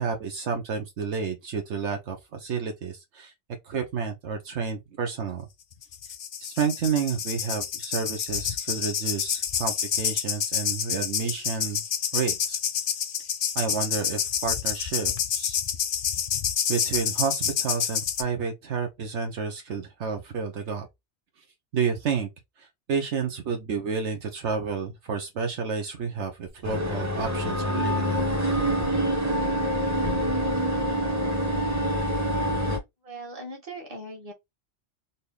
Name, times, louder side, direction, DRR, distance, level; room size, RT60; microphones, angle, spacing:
voice 1, 0.0-3.3 3.6-5.5 6.4-11.8 12.1-12.6 13.5-15.6 16.7-20.9 21.7-22.3 22.6-28.2, right 6 dB, 75° right, 1.1 m, -30 dB
sound 1, 5.8-18.2, left 8 dB, 55° left, 0.7 m, -28 dB
sound 2, 26.6-32.8, equal, 15° right, 1.0 m, -26 dB
voice 2, 33.0-34.3, right 1 dB, 30° right, 1.6 m, -39 dB
4.0 x 2.7 x 3.2 m
omnidirectional pair, 1.2 m